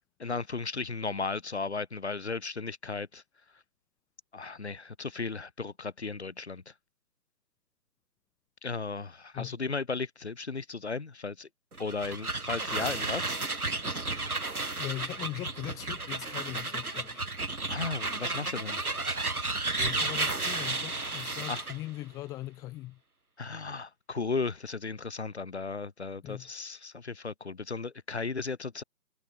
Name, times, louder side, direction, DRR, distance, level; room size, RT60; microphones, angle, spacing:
voice 1, 0.2-3.2 4.3-6.7 8.6-11.5 11.8-13.4 17.7-18.8 21.5-21.6 23.4-28.8, left 4 dB, 40° left, 4.1 m, -35 dB
sound 1, 11.7-21.8, right 3 dB, 60° right, 5.7 m, -33 dB
voice 2, 14.8-17.3 19.8-23.0 26.2-26.5, left 16 dB, 5° left, 5.1 m, -40 dB
figure-of-eight pair, 160°, 50 cm